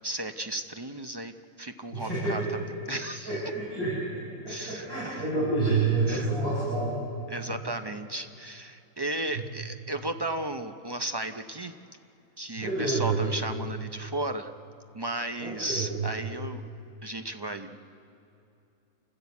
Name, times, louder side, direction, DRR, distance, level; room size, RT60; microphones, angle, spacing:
voice 1, 0.0-1.3 1.6-2.4 2.9-3.3 4.5-4.9 6.1-6.3 7.3-11.7 12.4-14.5 14.9-16.6 17.0-17.8, right 1 dB, 35° right, 7 dB, 0.4 m, -34 dB
voice 2, 1.9-2.4 3.2-7.0 7.5-7.6 9.3-9.5 12.6-13.2 15.4-16.1, right 3 dB, 70° right, -7 dB, 6.0 m, -28 dB
28.5 x 15.5 x 8.3 m, 2.7 s
omnidirectional pair, 1.6 m